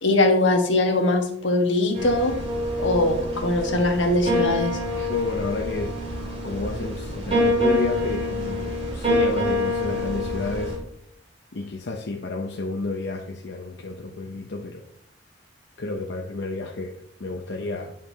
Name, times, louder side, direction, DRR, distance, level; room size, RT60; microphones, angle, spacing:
voice 1, 0.0-2.3 2.8-4.7, left 2 dB, 90° left, 1.4 m, -21 dB
sound 1, 1.9-10.8, left 1 dB, 35° right, 2.4 m, -26 dB
voice 2, 5.0-6.0 6.4-10.8 11.5-14.9 15.8-17.9, left 2 dB, 70° left, 0.7 m, -31 dB
10.5 x 5.4 x 2.8 m
head